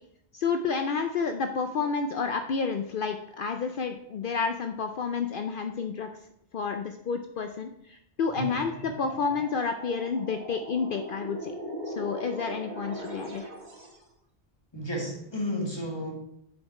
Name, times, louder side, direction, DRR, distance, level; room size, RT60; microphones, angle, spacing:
voice 1, 0.3-6.1 6.5-11.5 11.9-13.4, left 5 dB, 60° left, 6 dB, 0.7 m, -30 dB
sound 1, 8.3-14.0, right 1 dB, 45° right, 1.7 m, -40 dB
voice 2, 14.7-16.1, equal, 25° left, 0 dB, 1.8 m, -32 dB
7.3 x 5.0 x 4.8 m, 0.75 s
omnidirectional pair, 1.1 m